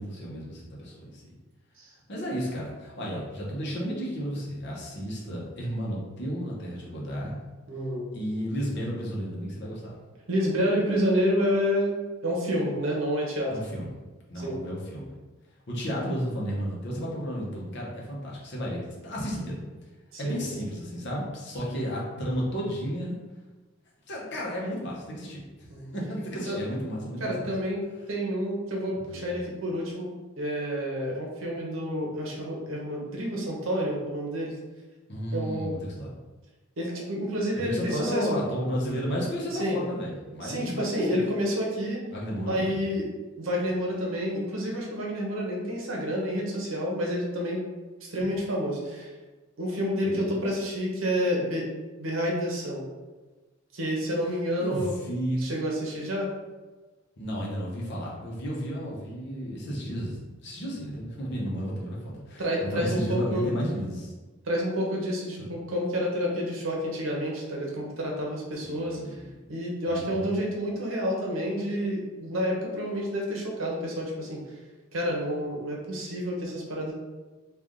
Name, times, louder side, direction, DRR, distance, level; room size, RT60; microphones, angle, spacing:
voice 1, 0.0-1.3 2.1-7.4 8.1-9.9 13.5-13.9 14.3-15.1 15.7-19.6 20.2-23.2 24.1-25.4 25.9-27.5 29.0-29.3 35.1-36.1 37.6-41.2 42.1-42.9 48.2-48.3 50.0-50.2 50.5-50.6 54.3-55.5 57.2-64.1 65.4-65.5 68.6-69.5 69.9-70.3, equal, 60° left, -4 dB, 1.0 m, -33 dB
voice 2, 7.7-8.0 10.3-12.0 12.2-13.5 14.4-14.6 20.1-20.6 25.7-25.9 26.5-26.6 27.2-27.8 28.1-30.1 30.4-34.5 35.3-35.7 36.8-38.3 39.6-39.8 40.4-42.0 42.5-43.0 43.4-47.6 48.0-49.1 49.6-51.7 52.0-52.8 53.7-54.9 55.4-56.3 62.4-63.5 64.5-69.0 69.5-74.4 74.9-76.9, equal, 85° right, -2 dB, 0.9 m, -29 dB
3.4 x 2.5 x 3.7 m, 1.2 s
head